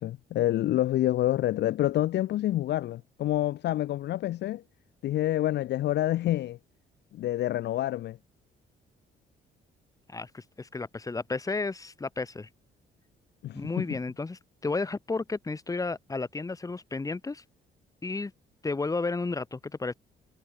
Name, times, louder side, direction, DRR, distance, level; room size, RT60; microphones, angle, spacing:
voice 1, 0.0-4.6 5.0-6.6 7.1-8.2 13.4-14.0, left 14 dB, 60° left, 0.4 m, -27 dB
voice 2, 10.1-12.5 13.5-17.4 18.0-18.3 18.6-19.9, left 3 dB, 15° left, 0.9 m, -32 dB
cardioid pair, 90°, 20 cm